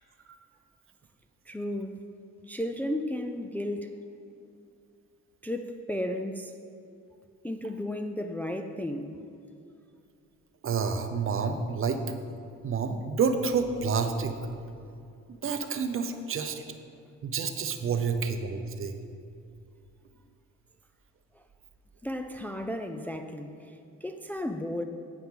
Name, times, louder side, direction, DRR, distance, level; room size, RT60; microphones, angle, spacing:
voice 1, 1.5-2.0 2.5-4.0 5.4-6.5 7.4-9.2 22.0-24.8, left 1 dB, 5° left, 5 dB, 0.4 m, -34 dB
voice 2, 10.6-12.1 12.6-14.4 15.4-16.6 17.2-18.9, right 5 dB, 45° right, 7 dB, 0.8 m, -29 dB
8.7 x 8.6 x 3.8 m, 2.5 s
cardioid pair, 90°, 30 cm